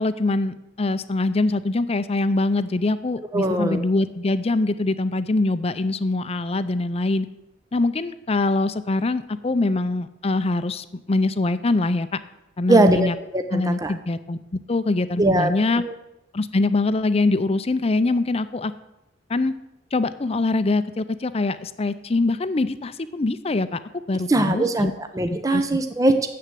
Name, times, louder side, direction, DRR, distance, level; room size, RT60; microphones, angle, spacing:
voice 1, 0.0-7.3 7.7-12.1 12.6-13.2 13.5-14.4 14.7-15.8 16.3-18.7 19.3-19.5 19.9-23.8 24.1-24.9 25.5-25.6, left 2 dB, 35° left, 12 dB, 0.5 m, -23 dB
voice 2, 3.3-3.8 12.7-13.9 15.2-15.9 24.3-26.3, right 2 dB, 20° right, 8 dB, 0.6 m, -21 dB
9.9 x 7.8 x 7.7 m, 0.91 s
head